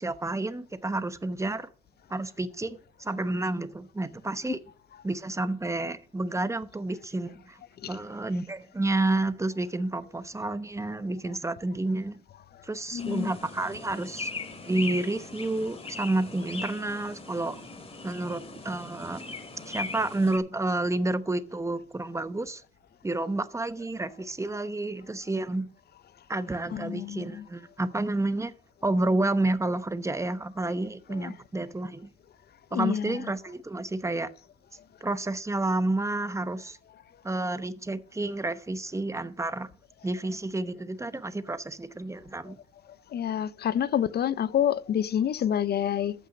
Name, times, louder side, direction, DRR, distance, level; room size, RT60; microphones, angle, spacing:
voice 1, 0.0-1.7 2.1-4.6 5.0-7.6 7.9-12.2 12.6-14.3 14.6-17.6 18.0-19.4 19.7-22.6 23.0-25.7 26.3-28.5 28.8-32.1 32.7-34.3 35.0-36.8 37.2-39.7 40.0-42.6, right 2 dB, 15° right, 0.9 m, -30 dB
voice 2, 12.9-13.3 26.7-27.4 31.2-31.3 32.7-33.0 43.1-46.1, left 9 dB, 55° left, 0.6 m, -27 dB
sound 1, 13.0-20.4, left 3 dB, 30° left, 2.2 m, -40 dB
14.0 x 5.9 x 5.0 m
cardioid pair, 90°, 20 cm